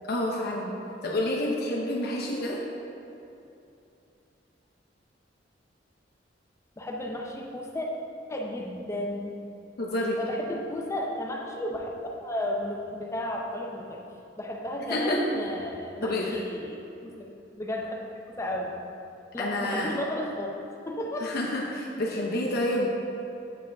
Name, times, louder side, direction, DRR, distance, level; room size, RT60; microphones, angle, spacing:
voice 1, 0.1-0.7 1.0-2.6 9.8-10.2 14.9-15.2 16.0-16.4 19.4-19.9 21.2-22.9, left 1 dB, 55° left, -3 dB, 0.7 m, -28 dB
voice 2, 6.8-7.9 8.3-9.3 10.2-11.9 12.2-14.0 14.4-16.8 17.0-18.0 18.3-18.8 19.3-20.6 20.9-21.3, left 1 dB, 15° left, 0 dB, 0.5 m, -33 dB
7.3 x 5.4 x 3.4 m, 2.7 s
head